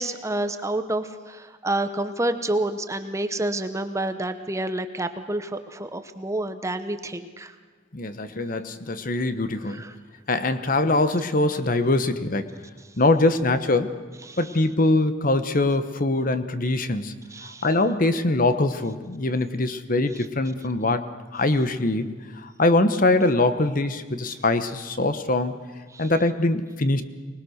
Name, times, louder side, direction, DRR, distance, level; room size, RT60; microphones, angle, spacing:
voice 1, 0.0-7.5 9.7-9.9 14.3-14.4 17.3-17.7 25.9-26.1, right 1 dB, 15° right, 9 dB, 0.9 m, -29 dB
voice 2, 7.9-9.8 10.3-12.4 13.0-13.9 14.4-17.1 17.4-21.0 21.3-22.0 22.4-25.5 26.0-27.0, left 2 dB, 45° left, 11 dB, 1.1 m, -23 dB
24.5 x 20.0 x 6.5 m, 1.4 s
head